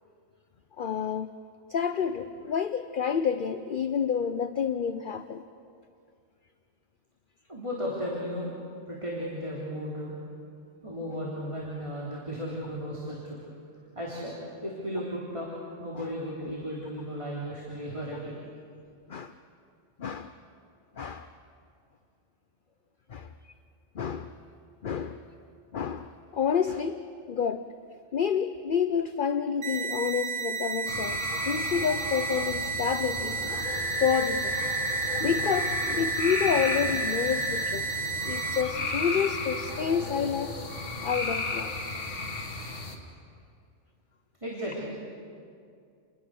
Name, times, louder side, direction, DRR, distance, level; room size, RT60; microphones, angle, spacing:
voice 1, 0.8-1.3 1.7-5.4 16.0-16.1 19.1-19.3 20.0-20.3 21.0-21.3 23.1-23.3 23.9-24.3 24.8-25.2 25.7-27.7 28.1-33.7 34.0-34.6 35.2-37.9 38.2-40.6 41.0-41.7, left 7 dB, 50° left, 9 dB, 0.8 m, -29 dB
voice 2, 7.5-8.5 8.9-10.1 10.8-13.4 14.0-14.4 14.6-15.5 15.8-18.3 44.4-44.9, equal, 25° right, -6 dB, 3.6 m, -35 dB
sound 1, 29.6-38.6, right 5 dB, 65° right, 1.4 m, -32 dB
sound 2, 30.9-42.9, left 2 dB, 70° left, 2.5 m, -33 dB
29.0 x 21.0 x 6.6 m, 2.3 s
omnidirectional pair, 1.3 m